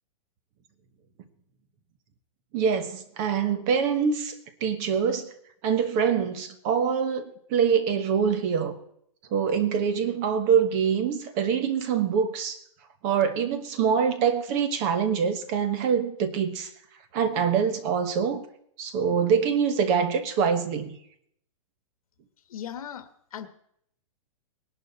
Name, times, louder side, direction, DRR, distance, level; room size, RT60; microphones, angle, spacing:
voice 1, 2.5-4.3 4.6-5.3 5.6-8.8 9.3-12.6 13.0-16.7 17.1-18.4 18.8-21.0, right 7 dB, 30° right, 1.2 m, -25 dB
voice 2, 22.5-23.5, left 9 dB, 70° left, 1.5 m, -38 dB
19.0 x 11.5 x 4.2 m
hypercardioid pair, 165°, 19 cm